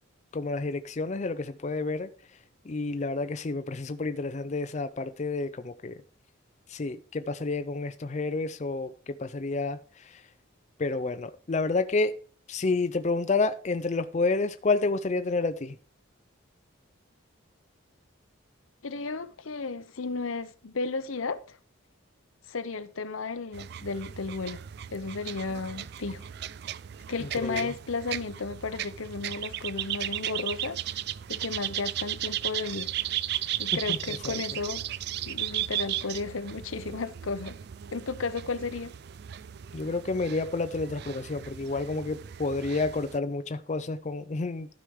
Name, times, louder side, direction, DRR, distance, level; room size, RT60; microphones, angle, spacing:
voice 1, 0.3-2.1 2.7-5.9 6.7-10.2 10.8-12.1 12.5-15.7 27.4-27.7 33.9-34.0 34.3-34.4 39.7-44.7, left 3 dB, 35° left, 0.4 m, -29 dB
voice 2, 18.8-21.6 22.5-24.6 24.9-26.3 27.1-30.8 31.3-32.9 33.6-34.9 35.2-37.6 37.9-38.9, left 4 dB, 85° left, 0.8 m, -34 dB
sound 1, 23.5-43.2, right 12 dB, 50° right, 0.3 m, -36 dB
12.5 x 5.0 x 4.7 m
head